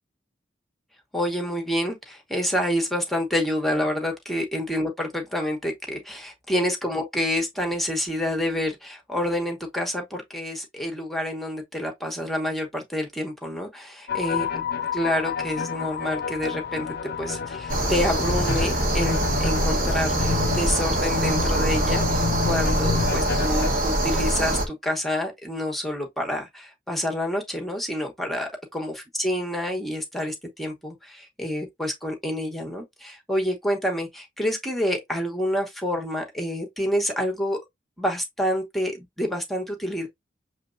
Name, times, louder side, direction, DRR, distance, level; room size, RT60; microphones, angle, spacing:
voice 1, 1.1-14.5 14.9-37.6 38.0-40.1, equal, ahead, 1.0 m, -28 dB
sound 1, 14.1-23.7, left 5 dB, 50° left, 0.5 m, -29 dB
sound 2, 17.7-24.7, right 1 dB, 45° right, 1.2 m, -24 dB
6.7 x 3.1 x 2.5 m
head